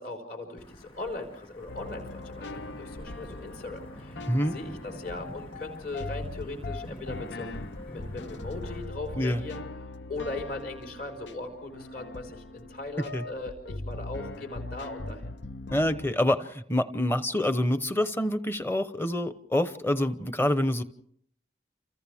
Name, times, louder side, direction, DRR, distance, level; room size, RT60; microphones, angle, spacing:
voice 1, 0.0-4.2 4.5-15.4, left 2 dB, 55° left, 4 dB, 5.0 m, -39 dB
Wind / Thunder / Rain, 0.6-8.8, equal, 30° left, 2.3 m, -47 dB
sound 1, 1.7-16.1, left 2 dB, 90° left, 0.8 m, -40 dB
voice 2, 15.7-20.8, left 1 dB, 10° left, 11 dB, 0.8 m, -26 dB
29.0 x 28.0 x 3.6 m, 0.69 s
head